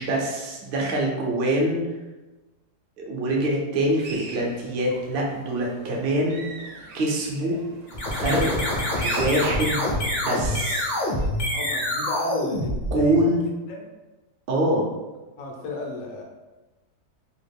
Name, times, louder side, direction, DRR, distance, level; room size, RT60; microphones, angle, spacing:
voice 1, 0.0-1.9 3.0-6.4 6.9-7.6 8.1-8.5 9.0-9.8 10.2-10.9 12.9-13.5 14.5-14.9, right 1 dB, 60° right, -2 dB, 0.6 m, -24 dB
sound 1, 3.9-11.3, right 3 dB, 85° right, 1.2 m, -41 dB
sound 2, 7.9-13.3, left 1 dB, 45° left, 0.6 m, -26 dB
voice 2, 11.5-13.2 13.8-13.9 15.4-16.2, left 2 dB, 65° left, 0 dB, 0.9 m, -34 dB
3.0 x 2.4 x 3.4 m, 1.1 s
omnidirectional pair, 1.8 m